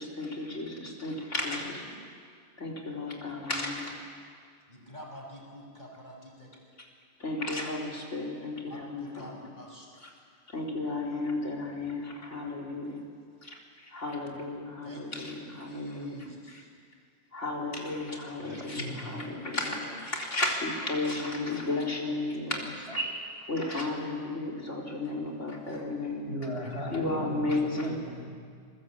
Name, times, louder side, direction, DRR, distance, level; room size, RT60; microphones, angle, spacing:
voice 1, 0.0-1.8 2.6-3.9 7.2-9.4 10.0-10.1 10.5-13.0 13.4-16.6 17.3-22.9 23.5-26.3 26.9-28.0, left 2 dB, 90° left, -1 dB, 4.2 m, -33 dB
voice 2, 1.5-1.9 4.7-6.5 8.6-9.9 14.8-15.0 15.6-16.7 25.6-25.8, equal, 40° left, 0 dB, 6.2 m, -46 dB
voice 3, 18.4-19.2 19.9-20.0 23.0-23.3 26.2-28.3, equal, 65° right, 2 dB, 5.0 m, -37 dB
27.0 x 22.0 x 8.6 m, 2.1 s
omnidirectional pair, 1.2 m